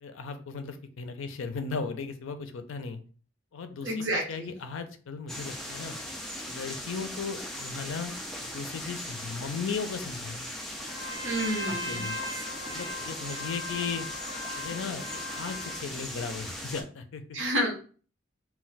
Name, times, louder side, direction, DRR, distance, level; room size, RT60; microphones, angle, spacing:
voice 1, 0.0-3.0 3.5-6.0 6.5-10.5 11.7-12.2 12.7-14.1 14.5-17.2, left 5 dB, 90° left, 8 dB, 0.4 m, -36 dB
voice 2, 3.8-4.5 11.2-12.1 17.3-17.7, equal, 70° right, 1 dB, 0.9 m, -30 dB
sound 1, 5.3-16.8, left 1 dB, ahead, 0.3 m, -39 dB
Trumpet, 10.8-15.9, left 1 dB, 20° right, 0.7 m, -38 dB
2.3 x 2.2 x 3.9 m, 0.41 s
head